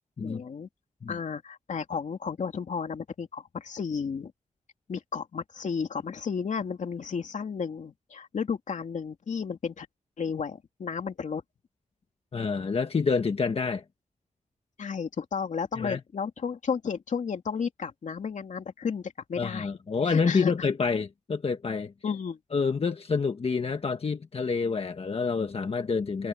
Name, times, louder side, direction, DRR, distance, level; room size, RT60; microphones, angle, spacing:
voice 1, 0.2-0.7 1.1-4.3 4.9-9.9 10.2-11.4 14.8-19.7 20.0-20.5 22.0-22.4, left 6 dB, 65° left, 2.6 m, -33 dB
voice 2, 12.3-13.8 15.8-16.0 19.4-21.9 22.5-26.3, left 5 dB, 45° left, 1.3 m, -28 dB
wide cardioid pair, 125°, 13 cm